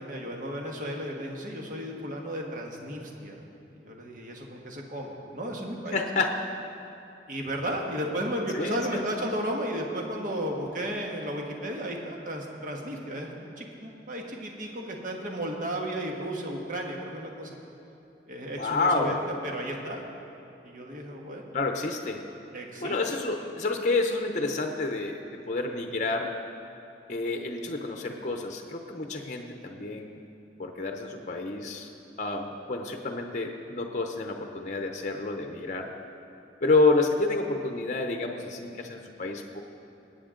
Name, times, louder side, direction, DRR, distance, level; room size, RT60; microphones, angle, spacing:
voice 1, 0.0-3.4 3.7-6.0 7.3-13.3 13.6-17.6 18.3-19.1 19.4-20.0 20.6-21.6 22.5-23.0, equal, 45° right, 1 dB, 1.4 m, -34 dB
voice 2, 5.9-6.4 8.5-9.0 18.6-19.2 21.5-22.2 22.8-25.2 25.5-26.3 27.1-30.2 30.6-31.9 32.2-35.9 36.6-39.6, left 3 dB, 40° left, 4 dB, 0.7 m, -29 dB
19.0 x 8.6 x 3.8 m, 2.9 s
head